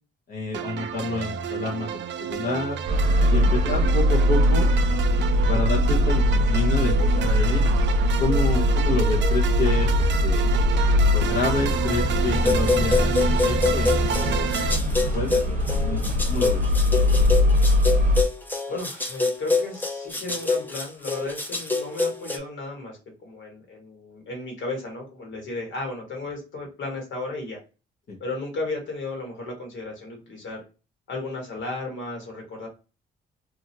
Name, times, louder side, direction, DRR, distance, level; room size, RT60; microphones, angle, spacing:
voice 1, 0.3-2.8 3.3-4.7 5.5-7.7 8.2-10.4 11.1-16.6 28.1-28.2, left 3 dB, 50° left, -2 dB, 0.8 m, -29 dB
sound 1, 0.5-14.8, right 8 dB, 65° right, 0.4 m, -30 dB
sound 2, 2.9-18.2, left 1 dB, 40° right, 0.7 m, -21 dB
sound 3, 12.3-22.4, left 3 dB, 10° left, 0.6 m, -26 dB
voice 2, 18.7-27.6 28.2-30.6 31.1-32.7, left 2 dB, 70° left, 1 dB, 1.5 m, -34 dB
2.9 x 2.4 x 2.7 m, 0.32 s
cardioid pair, 90°, 20 cm